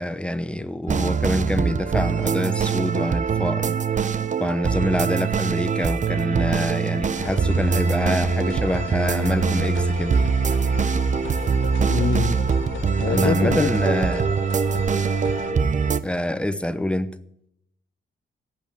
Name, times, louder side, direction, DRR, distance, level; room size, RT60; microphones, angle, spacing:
voice 1, 0.0-3.8 4.4-10.2 12.9-14.3 16.0-17.1, left 1 dB, 5° left, 0.9 m, -26 dB
sound 1, 0.9-16.0, right 5 dB, 40° right, 0.8 m, -23 dB
sound 2, 7.1-15.5, left 4 dB, 80° left, 1.9 m, -35 dB
voice 2, 11.9-12.3 13.0-14.2 15.5-15.7, left 6 dB, 50° left, 1.5 m, -26 dB
14.0 x 8.7 x 9.2 m
cardioid pair, 115°, 20 cm